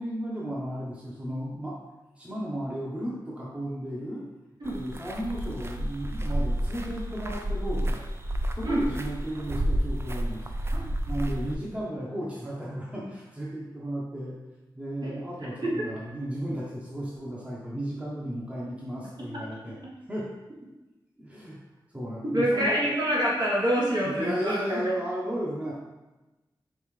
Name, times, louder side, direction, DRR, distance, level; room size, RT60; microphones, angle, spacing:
voice 1, 0.0-1.8 2.2-4.2 4.7-8.0 8.6-10.4 11.1-14.4 14.7-19.8 20.1-20.6 21.2-21.6 21.9-22.7 24.0-25.7, right 1 dB, 15° right, -6 dB, 1.0 m, -34 dB
sound 1, 4.6-11.6, equal, 30° right, 0.4 m, -30 dB
voice 2, 22.3-24.8, equal, 55° right, -6 dB, 1.4 m, -26 dB
5.3 x 2.6 x 3.2 m, 1.1 s
wide cardioid pair, 55°, 9 cm